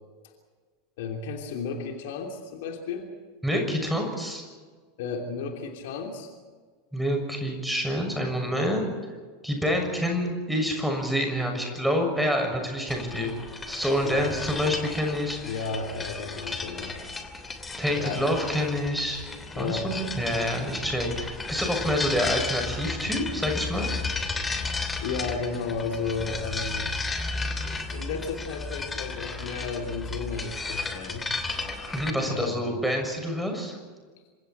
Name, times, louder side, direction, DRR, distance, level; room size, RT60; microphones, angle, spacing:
voice 1, 1.0-3.1 5.0-6.3 14.0-14.4 14.6-14.8 15.4-16.9 17.9-18.2 19.5-19.9 25.0-26.9 27.3-27.5 27.7-31.2 32.2-32.8, left 5 dB, 55° left, 3 dB, 3.0 m, -33 dB
voice 2, 3.4-4.4 6.9-8.9 9.4-13.3 13.7-15.5 17.8-19.2 19.6-23.9 31.9-33.8, equal, ahead, 2 dB, 6.7 m, -27 dB
sound 1, 12.9-32.1, left 3 dB, 15° left, 2.9 m, -34 dB
28.0 x 26.0 x 4.5 m, 1.5 s
figure-of-eight pair, 85°, 0 cm